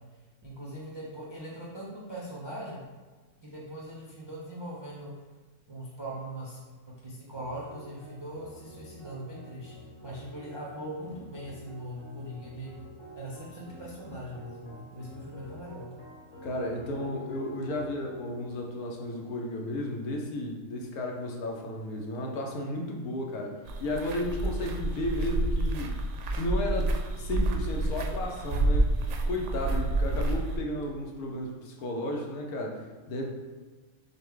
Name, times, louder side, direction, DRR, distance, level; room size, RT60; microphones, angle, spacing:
voice 1, 0.4-2.8 3.4-5.1 5.7-6.6 6.9-12.7 13.1-15.9, right 1 dB, 45° right, -5 dB, 0.3 m, -41 dB
sound 1, 7.3-19.8, right 1 dB, 55° left, 1.2 m, -49 dB
voice 2, 16.4-25.9 26.3-28.9 29.2-32.8 33.1-33.3, left 1 dB, 90° left, 1 dB, 1.2 m, -33 dB
sound 2, 23.7-30.6, right 2 dB, 65° right, 0.7 m, -29 dB
6.5 x 2.2 x 3.6 m, 1.3 s
omnidirectional pair, 1.5 m